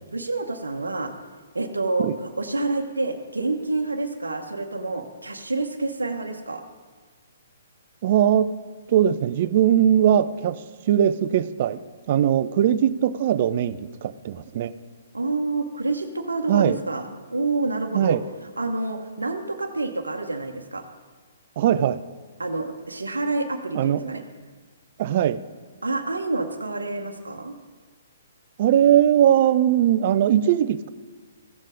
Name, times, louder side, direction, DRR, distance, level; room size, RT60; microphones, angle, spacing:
voice 1, 0.1-1.1 1.5-6.6 15.1-18.2 18.6-20.8 22.4-24.2 25.8-27.6, right 2 dB, 80° right, 5 dB, 0.9 m, -28 dB
voice 2, 8.0-8.6 8.9-11.8 12.1-14.7 16.5-16.8 17.9-18.2 21.6-22.0 23.7-24.2 25.0-25.4 28.6-30.9, right 10 dB, 45° right, 15 dB, 0.4 m, -20 dB
14.5 x 7.4 x 5.0 m, 1.4 s
figure-of-eight pair, 125°, 0 cm